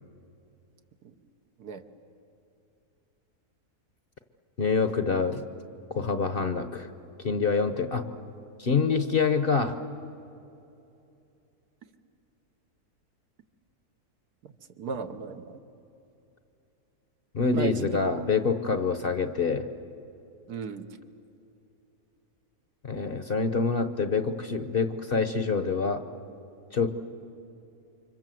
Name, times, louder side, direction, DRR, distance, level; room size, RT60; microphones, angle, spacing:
voice 1, 4.6-5.4 5.9-6.9 7.2-8.0 8.6-9.8 17.3-19.7 22.8-26.0 26.7-26.9, left 4 dB, 45° left, 9 dB, 0.9 m, -26 dB
voice 2, 14.4-15.6 17.5-17.9 20.5-20.8, right 5 dB, 75° right, 7 dB, 1.6 m, -35 dB
29.0 x 25.5 x 7.7 m, 2.8 s
omnidirectional pair, 1.6 m